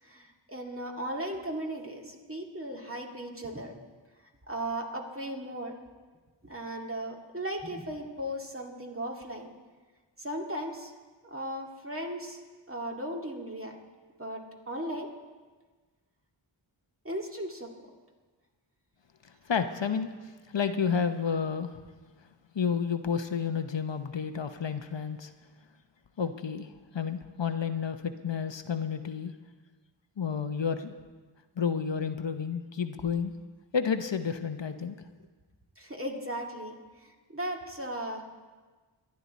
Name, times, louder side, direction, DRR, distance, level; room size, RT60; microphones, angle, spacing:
voice 1, 0.0-3.8 4.5-5.7 6.4-9.5 10.2-10.9 11.2-12.4 12.7-13.8 14.2-15.1 17.0-17.7 35.8-38.2, right 1 dB, 25° right, 0 dB, 2.1 m, -37 dB
voice 2, 19.2-21.8 22.5-25.3 26.2-29.3 30.2-30.9 31.6-33.3 33.7-35.0, left 6 dB, 65° left, 8 dB, 0.8 m, -31 dB
24.5 x 10.5 x 4.1 m, 1.3 s
wide cardioid pair, 50°, 48 cm